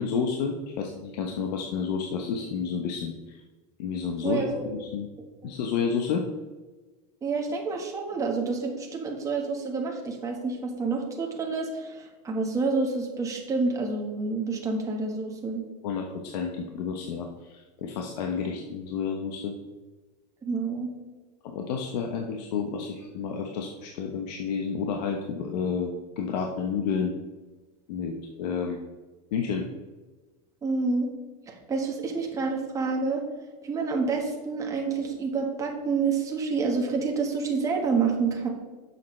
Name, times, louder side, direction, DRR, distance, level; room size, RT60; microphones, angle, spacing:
voice 1, 0.0-3.4 3.8-5.1 5.4-6.2 15.8-19.5 21.5-27.1 27.9-28.8 29.3-29.6, left 6 dB, 75° left, 2 dB, 1.0 m, -30 dB
voice 2, 4.2-4.6 7.2-15.6 20.4-20.9 30.6-31.1 31.5-33.2 33.6-38.5, right 4 dB, 15° right, 0 dB, 1.4 m, -28 dB
9.7 x 7.1 x 3.2 m, 1.3 s
supercardioid pair, 160°, 21 cm